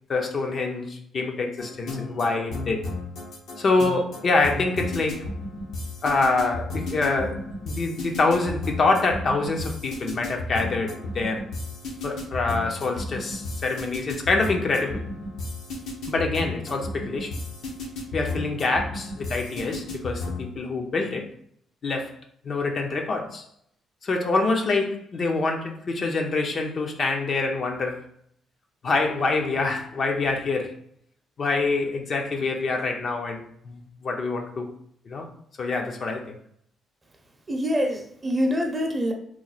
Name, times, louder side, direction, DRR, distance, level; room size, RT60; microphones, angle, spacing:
voice 1, 0.1-2.8 3.6-5.3 6.0-11.5 12.0-15.0 16.1-17.3 18.1-21.3 21.8-22.1 22.4-23.5 24.0-28.0 28.8-30.7 31.4-34.7 35.1-35.3 35.6-36.4, left 3 dB, 50° left, 3 dB, 0.6 m, -26 dB
sound 1, 1.6-20.5, left 2 dB, 80° left, 0.9 m, -34 dB
voice 2, 37.5-39.1, equal, 25° right, 3 dB, 0.7 m, -25 dB
3.1 x 2.1 x 3.9 m, 0.68 s
cardioid pair, 90°, 0 cm